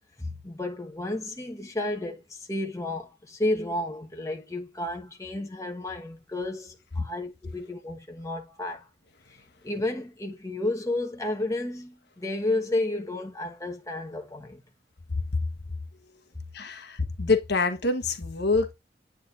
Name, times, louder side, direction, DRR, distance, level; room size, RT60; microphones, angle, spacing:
voice 1, 0.2-8.9 9.6-14.6, left 2 dB, 15° left, 1.1 m, -32 dB
voice 2, 16.5-18.7, left 3 dB, 60° left, 1.2 m, -26 dB
8.6 x 4.9 x 2.5 m
head